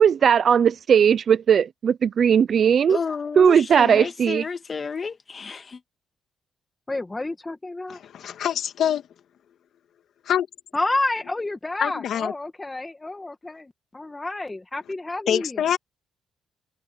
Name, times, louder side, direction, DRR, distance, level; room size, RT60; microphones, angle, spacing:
voice 1, 0.0-3.0 3.4-4.4, right 7 dB, 55° right, 0.6 m, -18 dB
voice 2, 2.9-5.8, left 5 dB, 40° left, 2.0 m, -31 dB
voice 3, 6.9-8.0 10.7-15.6, left 2 dB, 20° left, 1.9 m, -29 dB
voice 4, 7.9-9.0 10.3-10.5 11.8-12.3 15.3-15.8, left 9 dB, 70° left, 2.2 m, -25 dB
cardioid pair, 90°, 0 cm